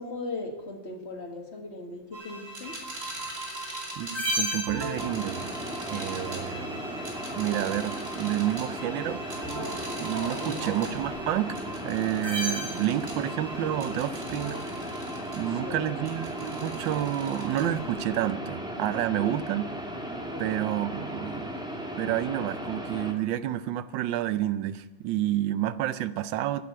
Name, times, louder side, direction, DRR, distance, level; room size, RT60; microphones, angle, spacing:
voice 1, 0.0-2.8 10.4-10.8 15.6-15.9 19.2-19.5 20.3-20.7, left 2 dB, 35° left, 3 dB, 1.9 m, -38 dB
sound 1, 2.1-18.1, right 1 dB, 40° right, 3.1 m, -37 dB
voice 2, 4.0-5.5 5.9-6.8 7.4-9.4 10.0-11.6 11.8-14.6 15.3-19.7 20.4-21.5 22.0-26.6, right 12 dB, 80° right, 15 dB, 1.4 m, -29 dB
sound 2, 5.0-23.1, equal, 5° right, 1.4 m, -36 dB
11.0 x 10.0 x 8.6 m, 1.1 s
omnidirectional pair, 2.0 m